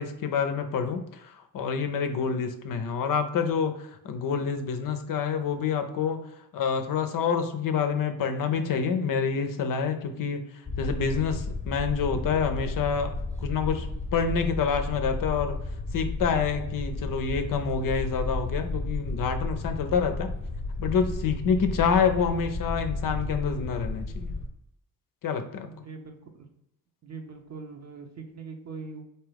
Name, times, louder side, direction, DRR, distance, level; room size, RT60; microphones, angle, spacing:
voice 1, 0.0-6.2 6.5-10.4 10.8-13.1 13.4-13.9 14.1-15.6 15.9-20.3 20.8-24.3 25.2-25.7, left 6 dB, 60° left, 7 dB, 0.6 m, -27 dB
sound 1, 10.7-24.5, left 2 dB, 20° left, 0.8 m, -33 dB
voice 2, 25.6-26.5 27.0-29.0, right 4 dB, 45° right, 4 dB, 0.8 m, -42 dB
3.5 x 2.8 x 3.4 m, 0.80 s
supercardioid pair, 55°, 37 cm